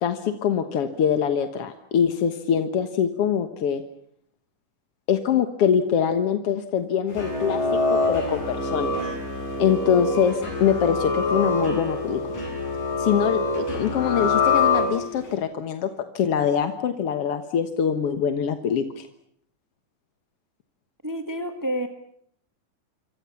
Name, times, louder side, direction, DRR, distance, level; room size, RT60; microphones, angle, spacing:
voice 1, 0.0-3.8 5.1-9.1 9.6-12.2 13.0-15.9 16.1-19.1, left 8 dB, 55° left, 8 dB, 1.9 m, -24 dB
sound 1, 7.1-15.3, left 3 dB, 80° left, 9.1 m, -25 dB
voice 2, 21.0-21.9, equal, 10° right, 6 dB, 0.9 m, -28 dB
27.0 x 24.5 x 7.1 m, 0.68 s
omnidirectional pair, 3.7 m